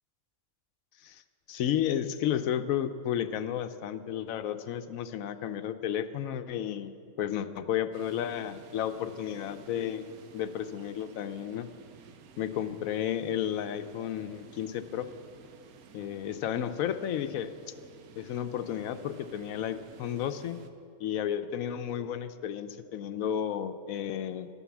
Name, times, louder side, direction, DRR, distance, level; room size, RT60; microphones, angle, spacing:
voice 1, 1.5-6.9 7.2-10.1 10.3-11.7 12.4-15.1 15.9-17.6 18.2-20.6 21.0-24.5, left 10 dB, 75° left, 11 dB, 1.0 m, -32 dB
sound 1, 7.9-20.7, right 6 dB, 85° right, 1.3 m, -54 dB
11.5 x 11.0 x 7.2 m, 2.5 s
omnidirectional pair, 1.5 m